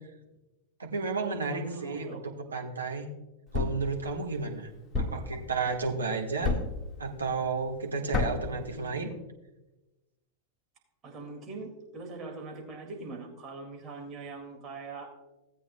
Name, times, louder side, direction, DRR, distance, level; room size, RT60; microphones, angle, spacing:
voice 1, 0.8-2.2 2.5-3.1 3.5-4.7 5.0-6.6 7.0-9.1, right 4 dB, 75° right, 1 dB, 1.3 m, -32 dB
voice 2, 1.3-2.5 8.5-9.2 11.0-15.1, right 3 dB, 25° right, 0 dB, 2.2 m, -42 dB
Thump thud, 3.5-3.9 4.9-5.3 6.4-6.8 8.1-8.5, left 3 dB, 15° left, 1.6 m, -29 dB
17.0 x 8.4 x 2.2 m, 1.0 s
figure-of-eight pair, 90°, 0 cm